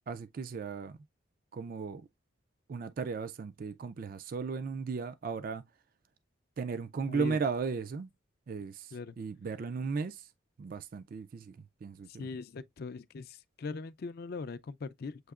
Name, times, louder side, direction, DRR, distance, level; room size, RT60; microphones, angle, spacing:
voice 1, 0.1-1.0 1.5-2.1 2.7-5.6 6.6-8.1 8.5-10.3 10.6-12.3, right 5 dB, 45° right, 0.3 m, -36 dB
voice 2, 7.1-7.4 8.9-9.2 12.1-15.3, left 4 dB, 50° left, 0.4 m, -40 dB
7.7 x 2.8 x 2.3 m
head